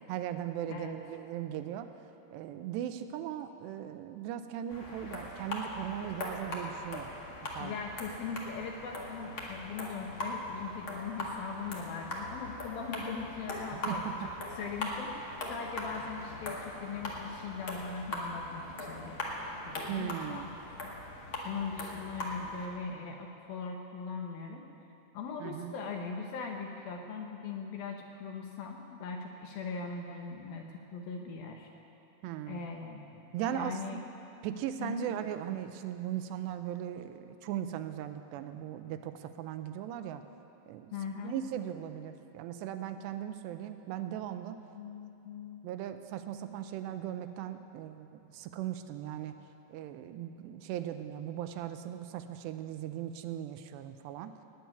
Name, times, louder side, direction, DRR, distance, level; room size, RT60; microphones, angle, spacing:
voice 1, 0.1-1.9 2.3-7.1 7.5-7.8 13.9-14.3 19.9-20.5 25.4-25.7 32.2-32.6 33.3-34.0 34.4-40.2 40.7-40.9 41.2-44.6 45.6-49.4 49.7-54.3, right 10 dB, 85° right, 9 dB, 2.7 m, -38 dB
sound 1, 4.7-22.7, left 1 dB, 45° left, 1.7 m, -40 dB
voice 2, 7.6-14.3 14.6-19.2 19.7-20.5 21.4-24.7 25.1-31.7 32.5-33.2 33.5-34.0 34.8-35.2 40.9-41.4 44.8-45.6, left 5 dB, 75° left, 2 dB, 2.3 m, -40 dB
19.0 x 7.9 x 9.4 m, 2.8 s
omnidirectional pair, 5.1 m